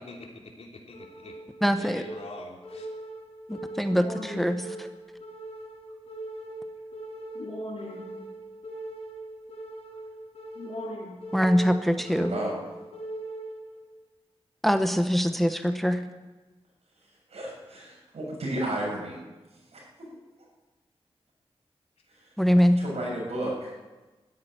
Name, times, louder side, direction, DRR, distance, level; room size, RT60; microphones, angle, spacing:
voice 1, 0.0-1.4 1.8-2.9, left 2 dB, 90° left, 0 dB, 3.1 m, -44 dB
sound 1, 0.9-13.9, right 1 dB, 70° left, 5.5 m, -40 dB
voice 2, 1.6-2.0 3.5-4.9 11.3-12.3 14.6-16.0 22.4-22.8, equal, ahead, 8 dB, 0.9 m, -23 dB
voice 3, 12.1-12.5 17.3-19.2 19.7-19.8 22.1-22.3 22.8-23.7, right 1 dB, 85° right, -3 dB, 7.3 m, -33 dB
13.0 x 10.5 x 10.0 m, 1.2 s
wide cardioid pair, 125°, 11 cm